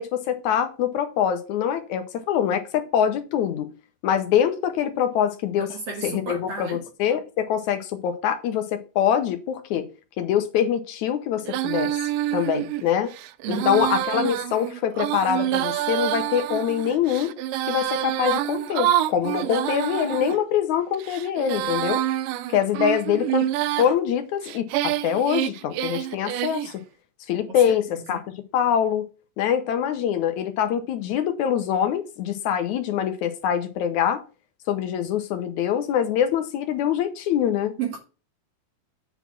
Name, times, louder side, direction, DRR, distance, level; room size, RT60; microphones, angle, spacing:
voice 1, 0.0-3.7 4.0-5.7 6.0-9.8 10.2-12.0 12.3-13.1 13.5-17.3 17.7-22.0 22.5-23.5 23.8-26.8 27.3-28.2 28.5-29.1 29.4-34.2 34.7-37.8, left 9 dB, 70° left, 1.9 m, -24 dB
voice 2, 5.6-6.9 13.4-13.8 27.5-28.2 37.8-38.0, right 5 dB, 50° right, 2.1 m, -33 dB
Female singing, 11.5-20.4 20.9-23.9 24.4-26.7, right 13 dB, 80° right, 2.0 m, -27 dB
8.2 x 4.1 x 5.7 m
omnidirectional pair, 4.2 m